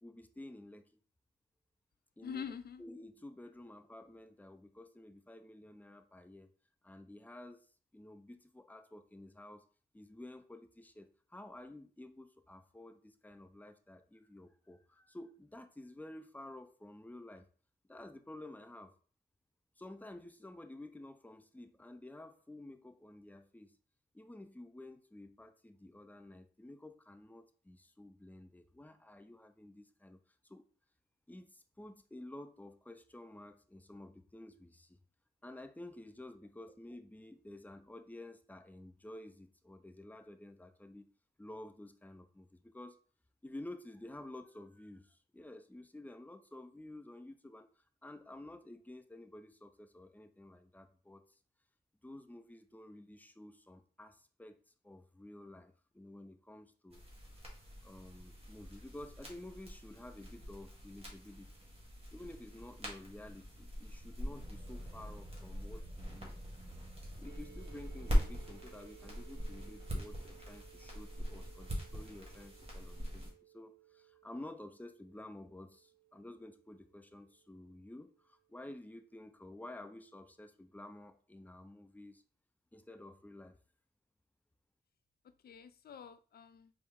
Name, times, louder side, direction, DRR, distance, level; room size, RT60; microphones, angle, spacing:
voice 1, 0.0-0.9 2.2-2.4 2.8-6.5 6.8-7.7 7.9-9.6 9.9-17.5 17.9-18.9 19.8-23.8 24.1-30.2 30.4-30.6 31.3-35.0 35.4-41.1 41.4-43.0 43.4-51.4 52.0-54.6 54.8-57.0 57.8-61.5 62.1-66.4 67.2-82.2 82.7-83.6, left 1 dB, 10° left, 8 dB, 0.5 m, -51 dB
voice 2, 2.2-2.8 85.2-86.7, left 7 dB, 60° left, 12 dB, 0.4 m, -46 dB
sound 1, 56.9-73.3, equal, 35° right, 1.5 m, -41 dB
sound 2, 67.2-78.9, right 16 dB, 70° right, 0.6 m, -62 dB
4.3 x 2.0 x 3.6 m, 0.41 s
cardioid pair, 55°, 18 cm